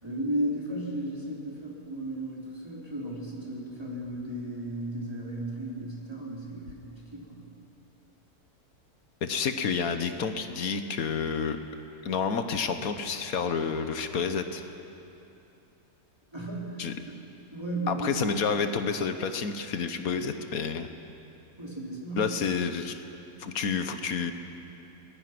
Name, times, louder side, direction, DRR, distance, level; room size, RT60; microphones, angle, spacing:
voice 1, 0.0-7.5 16.3-17.2 17.5-18.4 21.6-22.5, right 1 dB, 15° right, -4 dB, 4.0 m, -35 dB
voice 2, 9.2-11.6 12.0-14.7 16.8-16.9 17.9-20.9 22.2-23.0 23.4-24.3, left 6 dB, 70° left, 8 dB, 1.5 m, -29 dB
24.5 x 20.0 x 6.1 m, 2.8 s
omnidirectional pair, 1.6 m